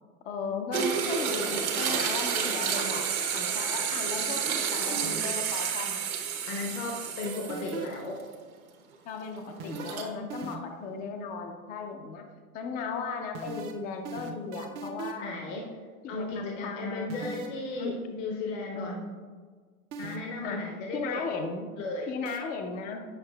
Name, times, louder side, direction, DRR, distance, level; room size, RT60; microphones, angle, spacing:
voice 1, 0.2-3.1 3.3-6.0 9.1-12.2 12.5-15.5 16.0-17.5 17.8-18.0 18.8-19.2 20.4-20.7 20.9-21.7 22.1-23.0, left 4 dB, 20° left, 4 dB, 0.5 m, -36 dB
sound 1, 0.7-7.9 8.3-8.4 9.6-10.1, right 7 dB, 65° right, 1.1 m, -30 dB
sound 2, 4.9-5.4 7.2-8.1 9.6-10.8 13.3-15.3 17.1-17.6 19.9-20.4 22.2-22.4, right 5 dB, 30° right, 0.5 m, -39 dB
voice 2, 6.5-8.2 15.2-15.7 16.1-19.0 20.0-21.3 21.8-22.1, left 2 dB, 55° left, 1 dB, 1.0 m, -35 dB
7.8 x 5.6 x 2.3 m, 1.5 s
hypercardioid pair, 100°, 44 cm